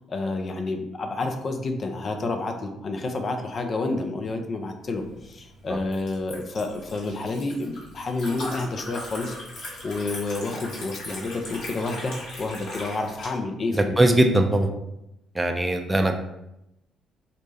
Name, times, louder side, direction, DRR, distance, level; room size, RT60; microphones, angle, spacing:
voice 1, 0.1-9.4 9.8-12.1 12.4-14.2, left 3 dB, 45° left, 4 dB, 0.5 m, -29 dB
Liquid, 4.9-13.3, left 1 dB, 75° left, 1.3 m, -39 dB
voice 2, 13.7-14.7 15.3-16.2, right 1 dB, 15° right, 5 dB, 0.4 m, -20 dB
4.0 x 2.1 x 3.3 m, 0.87 s
hypercardioid pair, 50°, 0 cm